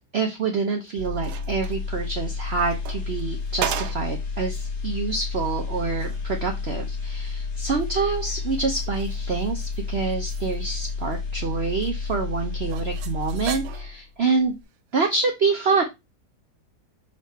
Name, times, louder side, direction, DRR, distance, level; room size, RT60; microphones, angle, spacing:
voice 1, 0.1-14.6 14.9-15.8, right 4 dB, 50° right, 3 dB, 0.9 m, -26 dB
sound 1, 0.7-1.8 2.6-4.2 4.6-4.7 5.3-5.4 5.8-6.3 7.8-9.8 10.1-11.4 11.8-11.9 12.7-14.1 14.9-15.1, right 10 dB, 80° right, 1.3 m, -36 dB
sound 2, 1.0-14.1 14.4-14.6, left 4 dB, 45° left, 1.5 m, -31 dB
6.4 x 3.8 x 4.1 m, 0.23 s
omnidirectional pair, 1.7 m